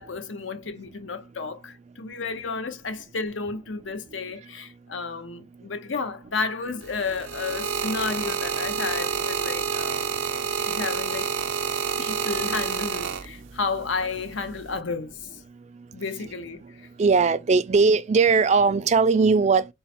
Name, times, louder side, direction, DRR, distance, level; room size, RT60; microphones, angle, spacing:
voice 1, 0.0-10.1 10.7-11.3 12.0-15.4 15.9-16.9, left 4 dB, 80° left, 0.8 m, -32 dB
sound 1, 6.8-13.7 14.5-14.8, right 6 dB, 90° right, 0.6 m, -28 dB
voice 2, 17.0-19.7, right 4 dB, 35° right, 0.3 m, -19 dB
3.8 x 2.1 x 4.2 m
head